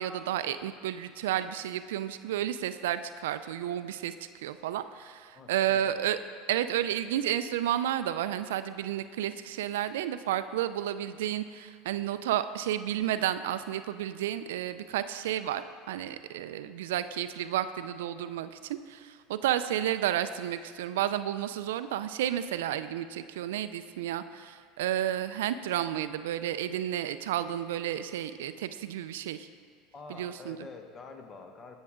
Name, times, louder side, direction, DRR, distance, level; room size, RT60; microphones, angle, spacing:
voice 1, 0.0-6.2 6.5-29.5 30.1-30.6, right 11 dB, 80° right, 12 dB, 0.3 m, -31 dB
voice 2, 5.3-6.2 29.9-31.8, left 4 dB, 35° left, 5 dB, 1.1 m, -47 dB
15.0 x 6.3 x 3.7 m, 2.1 s
hypercardioid pair, 95°, 0 cm